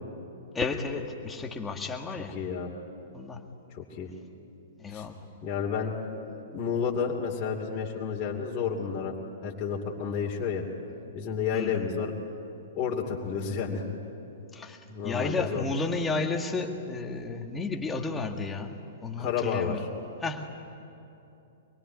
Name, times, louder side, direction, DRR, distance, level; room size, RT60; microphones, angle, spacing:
voice 1, 0.5-2.4 3.1-3.4 4.8-5.2 11.5-11.9 14.5-18.8 19.0-19.8 20.2-20.5, left 3 dB, 10° left, 3 dB, 1.9 m, -32 dB
voice 2, 2.3-2.7 3.7-4.1 4.9-5.1 5.4-5.9 6.5-9.1 9.4-10.6 11.1-12.1 12.8-13.8 14.9-15.6 19.2-19.9, left 6 dB, 30° left, -3 dB, 2.7 m, -30 dB
25.0 x 22.5 x 9.4 m, 2.7 s
figure-of-eight pair, 110°, 0 cm